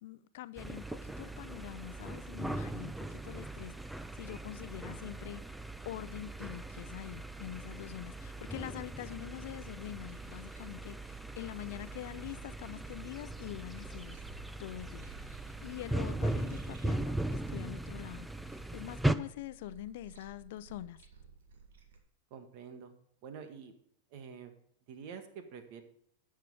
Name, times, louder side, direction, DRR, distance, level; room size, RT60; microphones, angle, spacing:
voice 1, 0.0-3.7 4.1-5.4 5.9-14.2 14.6-15.1 15.6-18.3 18.7-21.0, left 14 dB, 65° left, 0.6 m, -44 dB
sound 1, 0.6-19.1, right 1 dB, 5° right, 0.6 m, -39 dB
sound 2, 10.0-22.0, right 6 dB, 80° right, 1.9 m, -56 dB
voice 2, 22.3-22.9 23.2-23.7 24.1-24.5 24.9-25.8, right 6 dB, 55° right, 1.7 m, -47 dB
11.0 x 6.6 x 4.9 m
hypercardioid pair, 110°, 0 cm